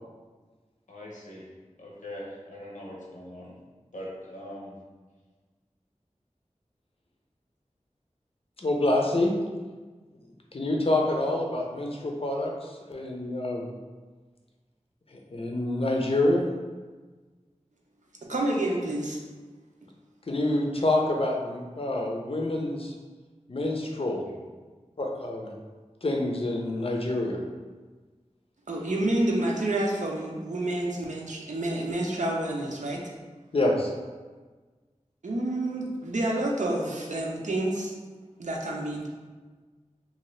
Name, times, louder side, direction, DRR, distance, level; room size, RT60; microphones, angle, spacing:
voice 1, 0.9-1.5 1.8-3.6 3.9-4.8 28.7-28.8, equal, 90° left, -4 dB, 0.8 m, -41 dB
voice 2, 8.6-9.3 10.5-13.7 15.1-16.5 20.3-22.9 23.5-24.2 25.0-25.5 26.0-27.4 33.5-33.9, left 1 dB, 50° left, 0 dB, 0.5 m, -27 dB
voice 3, 18.3-19.2 28.7-33.0 35.2-37.9 38.4-39.1, right 1 dB, 80° right, -2 dB, 0.5 m, -28 dB
2.7 x 2.5 x 3.1 m, 1.4 s
wide cardioid pair, 50°, 12 cm